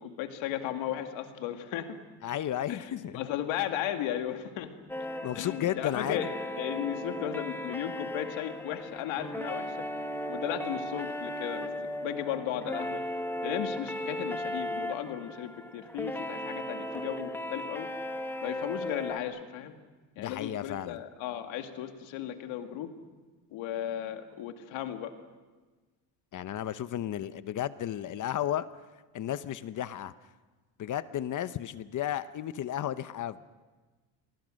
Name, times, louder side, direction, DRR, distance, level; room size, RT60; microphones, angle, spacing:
voice 1, 0.0-2.0 2.7-4.7 5.3-9.9 10.2-11.7 12.0-13.0 13.4-17.9 18.4-19.7 20.2-22.9 23.5-25.1, left 11 dB, 85° left, 6 dB, 2.3 m, -35 dB
voice 2, 2.2-3.2 5.2-6.2 20.2-21.0 26.3-28.7 29.1-30.1 30.8-33.4, left 11 dB, 40° left, 14 dB, 0.8 m, -33 dB
sound 1, 4.9-19.2, left 1 dB, 5° left, 1.5 m, -36 dB
30.0 x 23.0 x 6.4 m, 1.3 s
cardioid pair, 135°, 45 cm